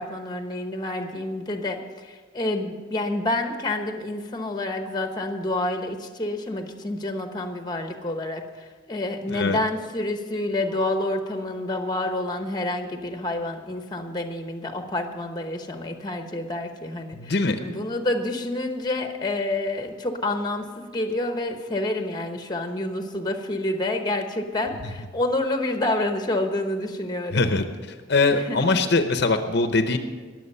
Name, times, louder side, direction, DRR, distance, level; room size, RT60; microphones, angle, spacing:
voice 1, 0.0-27.4 28.3-28.8, left 2 dB, 20° left, 5 dB, 1.0 m, -28 dB
voice 2, 17.1-17.6 27.3-27.6 28.1-30.0, left 3 dB, 55° left, 7 dB, 0.8 m, -22 dB
21.0 x 7.6 x 5.5 m, 1.5 s
head